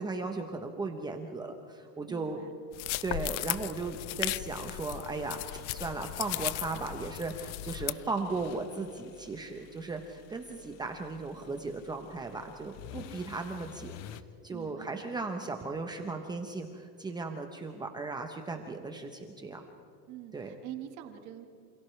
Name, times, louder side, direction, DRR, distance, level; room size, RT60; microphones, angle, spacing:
voice 1, 0.0-2.4 3.0-19.6 20.3-20.5, right 3 dB, 10° right, 4 dB, 0.9 m, -37 dB
voice 2, 2.1-2.6 14.5-15.0 20.1-21.5, right 12 dB, 50° right, 5 dB, 1.8 m, -45 dB
sound 1, 2.7-7.9, left 18 dB, 70° left, 0.6 m, -36 dB
sound 2, 7.7-14.2, left 11 dB, 45° left, 0.9 m, -50 dB
28.5 x 28.0 x 3.3 m, 2.6 s
supercardioid pair, 160°, 37 cm